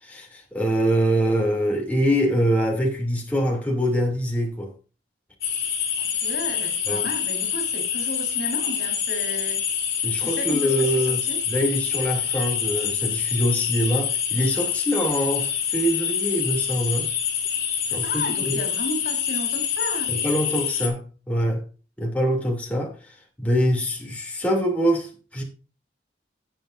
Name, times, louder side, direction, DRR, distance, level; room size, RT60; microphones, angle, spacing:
voice 1, 0.0-4.7 6.9-7.1 10.0-11.2 11.5-17.1 17.9-18.6 20.1-21.6 22.0-25.4, equal, 10° left, 2.7 m, -24 dB
sound 1, 5.4-20.9, left 8 dB, 60° left, 4.4 m, -26 dB
voice 2, 6.0-9.6 10.2-11.4 17.9-20.2, left 1 dB, 75° left, 4.0 m, -34 dB
18.0 x 7.3 x 2.6 m
head